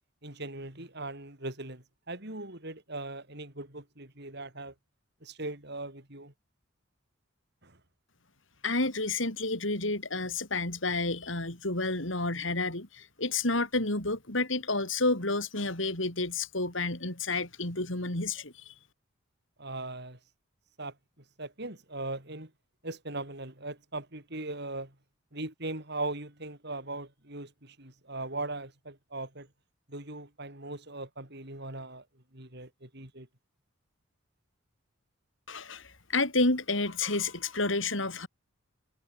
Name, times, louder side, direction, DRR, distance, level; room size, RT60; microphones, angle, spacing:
voice 1, 0.2-4.7 5.2-6.3 7.6-7.8 19.6-20.2 20.8-20.9 21.4-22.5 22.8-24.9 25.3-29.5 29.9-32.0 32.3-33.3, right 2 dB, 55° right, 6.8 m, -39 dB
voice 2, 8.6-18.7 35.5-38.3, left 2 dB, 65° left, 5.5 m, -30 dB
head